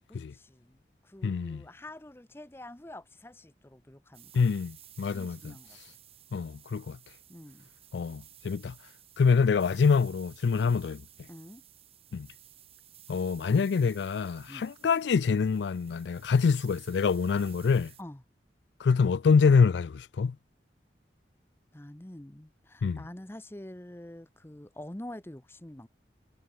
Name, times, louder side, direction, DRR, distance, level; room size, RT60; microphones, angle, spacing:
voice 1, 0.1-4.4 5.1-6.0 7.3-7.7 11.3-11.6 14.5-14.7 18.0-18.2 21.7-25.9, left 1 dB, 15° left, 0.7 m, -46 dB
voice 2, 1.2-1.6 4.3-5.5 6.3-7.0 7.9-8.7 9.2-11.0 12.1-12.3 13.1-17.9 18.8-20.4 22.8-23.0, left 5 dB, 85° left, 0.4 m, -25 dB
sound 1, 4.1-18.0, right 12 dB, 35° right, 1.8 m, -55 dB
head